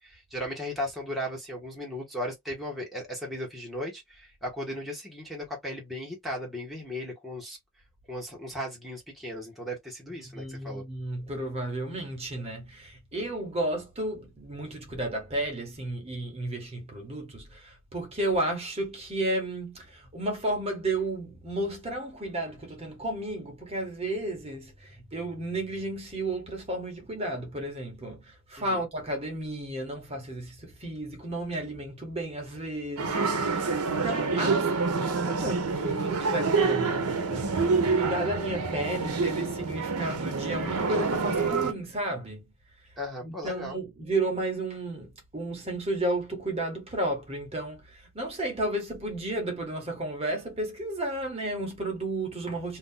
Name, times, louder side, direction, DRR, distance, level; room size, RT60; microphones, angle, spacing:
voice 1, 0.0-7.6 8.1-10.8 28.6-28.8 43.0-43.8, equal, ahead, 1.1 m, -36 dB
voice 2, 10.2-42.4 43.2-52.8, right 1 dB, 25° right, 1.2 m, -33 dB
sound 1, 33.0-41.7, right 4 dB, 80° right, 0.8 m, -27 dB
2.8 x 2.5 x 3.8 m
head